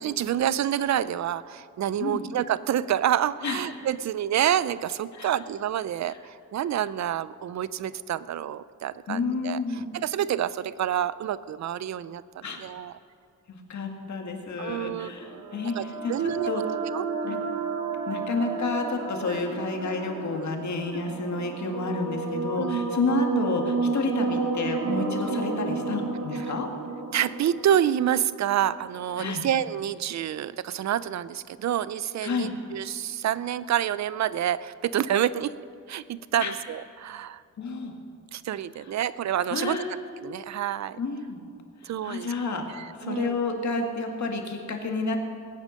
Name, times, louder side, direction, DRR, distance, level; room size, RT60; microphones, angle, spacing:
voice 1, 0.0-9.6 9.9-12.9 14.6-16.5 16.9-17.4 19.3-19.4 22.6-22.8 27.1-35.5 35.9-37.4 38.3-39.8 40.2-41.0 41.8-42.3 42.8-43.4, right 10 dB, 60° right, 17 dB, 0.5 m, -28 dB
voice 2, 9.1-9.8 12.4-12.6 13.5-16.6 17.2-17.4 18.1-26.7 29.2-29.4 32.2-32.5 36.4-36.5 37.6-37.9 38.7-38.9 39.5-39.9 41.0-41.4 41.8-45.2, left 3 dB, 65° left, 3 dB, 2.1 m, -30 dB
sound 1, 14.8-28.9, right 3 dB, 85° right, 1.8 m, -32 dB
20.5 x 9.0 x 6.5 m, 2.4 s
wide cardioid pair, 115°, 31 cm